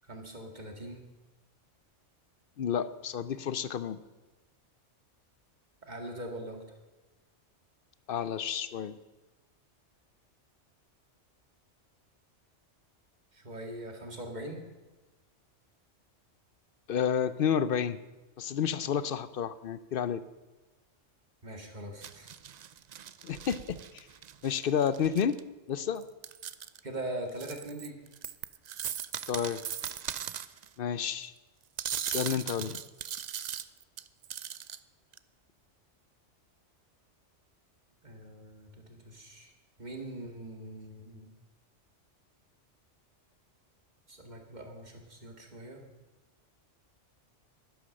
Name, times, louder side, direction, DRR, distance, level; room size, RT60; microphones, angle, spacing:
voice 1, 0.1-1.0 5.9-6.6 13.3-14.6 21.4-22.3 26.8-28.0 38.0-39.5 39.8-41.3 44.1-45.8, right 1 dB, 35° right, 3 dB, 2.1 m, -42 dB
voice 2, 2.6-4.0 8.1-9.0 16.9-18.0 18.4-20.2 23.2-24.1 24.4-25.4 25.7-26.0 29.3-29.6 30.8-31.3 32.1-32.8, left 8 dB, 60° left, 15 dB, 0.7 m, -30 dB
sound 1, 22.0-25.4 26.0-26.8 27.3-30.7 31.8-34.8 35.1-35.2, right 9 dB, 60° right, 0.4 m, -39 dB
11.5 x 11.0 x 6.4 m, 1.2 s
omnidirectional pair, 1.2 m